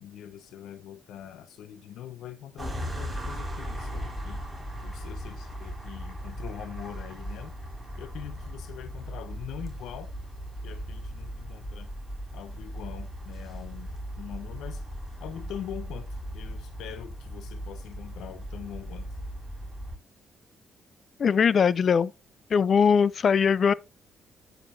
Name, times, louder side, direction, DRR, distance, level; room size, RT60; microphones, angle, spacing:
voice 1, 0.0-4.4 4.8-7.6 8.0-10.1 10.6-11.9 12.3-14.9 15.2-19.1, left 10 dB, 80° left, 0.7 m, -43 dB
sound 1, 2.6-20.0, equal, 5° right, 4.8 m, -38 dB
voice 2, 21.2-22.1 22.5-23.7, left 6 dB, 50° left, 0.4 m, -21 dB
14.0 x 4.9 x 2.6 m
cardioid pair, 90°, 0 cm